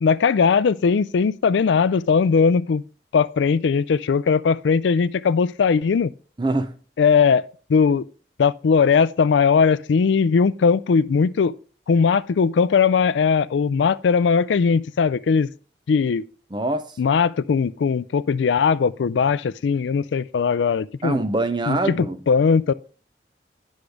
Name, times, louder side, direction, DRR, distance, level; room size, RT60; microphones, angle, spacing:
voice 1, 0.0-2.8 3.1-6.1 7.0-7.4 7.7-8.1 8.4-11.5 11.9-15.5 15.9-16.2 17.0-21.2 21.7-22.7, left 5 dB, 85° left, 0.4 m, -19 dB
voice 2, 6.4-6.7 16.5-16.9 21.0-22.2, right 2 dB, 25° right, 0.6 m, -24 dB
9.8 x 6.4 x 3.4 m
head